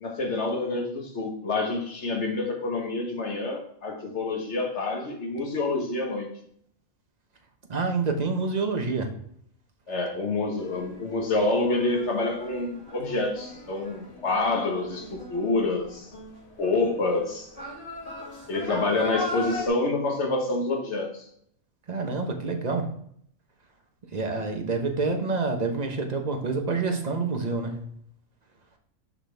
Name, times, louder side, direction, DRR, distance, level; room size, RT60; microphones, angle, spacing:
voice 1, 0.0-6.3 9.9-16.1 16.6-17.5 18.5-21.3, left 3 dB, 55° left, 2 dB, 1.6 m, -27 dB
voice 2, 7.7-9.1 9.9-10.0 21.9-22.9 24.1-27.8, right 4 dB, 35° right, 4 dB, 1.0 m, -27 dB
sound 1, 10.6-19.7, left 1 dB, 25° left, 2.1 m, -39 dB
6.3 x 5.9 x 3.4 m, 0.67 s
omnidirectional pair, 1.4 m